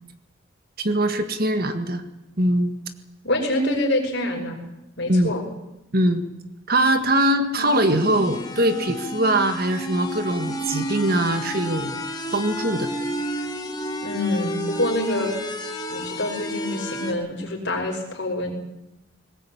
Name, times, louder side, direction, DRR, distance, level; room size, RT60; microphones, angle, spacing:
voice 1, 0.8-2.0 2.4-2.8 5.1-5.3 5.9-6.2 6.7-11.9 12.3-12.9, right 1 dB, 45° right, 8 dB, 1.8 m, -22 dB
voice 2, 3.2-4.6 5.0-5.4 14.0-15.3 15.9-18.5, left 1 dB, 55° left, 1 dB, 5.6 m, -26 dB
sound 1, 7.6-17.1, equal, 20° left, 2.4 m, -31 dB
21.0 x 19.0 x 8.7 m, 0.92 s
head